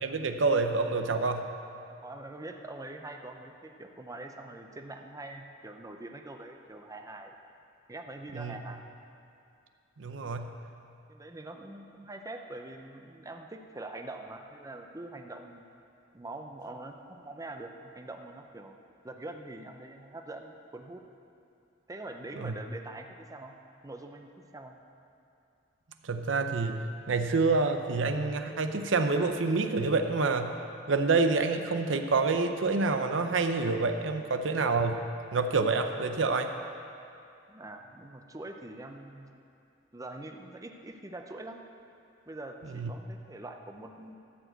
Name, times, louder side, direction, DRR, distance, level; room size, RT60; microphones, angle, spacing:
voice 1, 0.0-1.4 8.3-8.5 10.0-10.5 22.4-22.5 26.0-26.8 27.1-30.5 30.9-35.0 35.3-36.5 42.7-42.9, right 3 dB, 75° right, 6 dB, 0.7 m, -27 dB
voice 2, 1.9-7.3 7.9-8.8 11.1-15.7 16.1-18.8 19.0-21.0 21.9-23.6 23.8-24.7 37.5-39.4 39.9-41.6 42.3-44.2, right 2 dB, 20° right, 4 dB, 0.6 m, -44 dB
14.0 x 4.9 x 7.9 m, 2.5 s
head